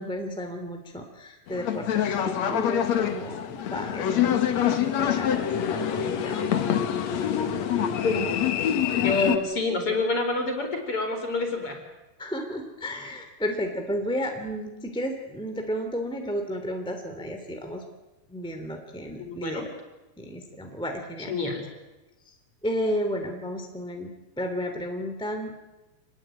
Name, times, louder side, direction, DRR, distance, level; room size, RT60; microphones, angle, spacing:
voice 1, 0.0-6.4 9.1-9.3 12.2-17.8 18.3-19.7 20.2-21.3 22.3-22.4 22.6-25.6, equal, ahead, 4 dB, 2.3 m, -33 dB
sound 1, 1.5-9.4, left 9 dB, 55° left, 2.4 m, -26 dB
voice 2, 8.9-11.8 19.2-19.7 21.3-21.7, left 3 dB, 35° left, 4 dB, 5.3 m, -27 dB
28.0 x 20.5 x 9.1 m, 1.1 s
omnidirectional pair, 4.6 m